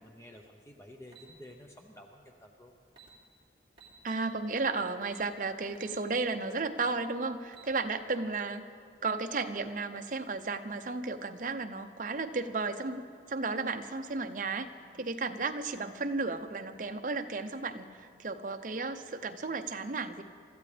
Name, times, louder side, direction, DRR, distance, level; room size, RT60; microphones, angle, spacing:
voice 1, 0.0-2.8 15.0-15.1, left 1 dB, 15° left, 1 dB, 0.7 m, -52 dB
sound 1, 1.1-1.3 2.5-2.6 2.9-3.1 3.8-4.3 5.0-5.2 5.7-6.0 6.4-6.5 7.3-7.7, right 6 dB, 25° right, 2.9 m, -54 dB
voice 2, 4.0-8.7 9.0-14.7 15.0-20.2, right 3 dB, 45° right, 7 dB, 0.7 m, -34 dB
25.5 x 13.5 x 3.4 m, 2.2 s
head